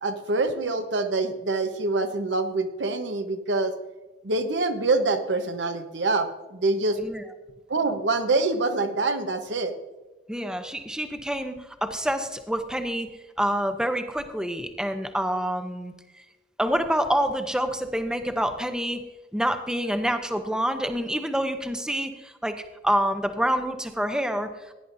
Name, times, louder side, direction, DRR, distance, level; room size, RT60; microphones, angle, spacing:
voice 1, 0.0-3.7 4.2-7.0 7.7-9.7, right 3 dB, 90° right, 7 dB, 1.1 m, -25 dB
voice 2, 10.3-16.2 16.6-19.0 19.3-24.7, equal, 5° right, 7 dB, 0.7 m, -27 dB
16.5 x 10.0 x 2.7 m, 1.1 s
head